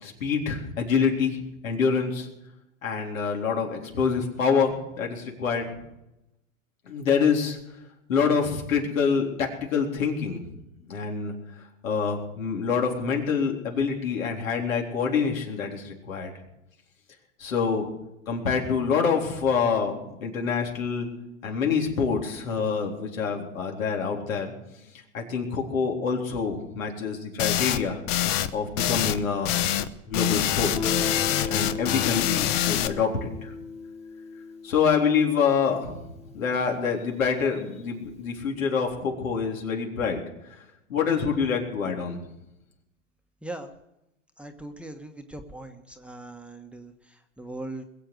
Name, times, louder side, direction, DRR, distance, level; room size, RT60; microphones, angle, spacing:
voice 1, 0.0-2.3 2.8-5.7 6.9-7.6 8.1-10.4 10.9-11.3 11.8-16.3 17.4-17.9 18.3-21.1 21.4-24.5 25.1-28.0 28.5-29.6 30.1-30.7 31.5-33.5 34.6-36.0 36.3-40.2 40.9-42.2, left 6 dB, 80° left, 1 dB, 3.9 m, -26 dB
sound 1, 27.4-27.8 28.1-28.5 28.8-29.2 29.4-29.9 30.1-32.9, left 12 dB, 50° left, 1.1 m, -25 dB
Guitar, 30.7-36.2, left 4 dB, 15° left, 1.8 m, -36 dB
voice 2, 44.4-47.8, right 2 dB, 5° right, 5 dB, 1.2 m, -40 dB
21.5 x 7.8 x 7.9 m, 0.88 s
hypercardioid pair, 115°, 40 cm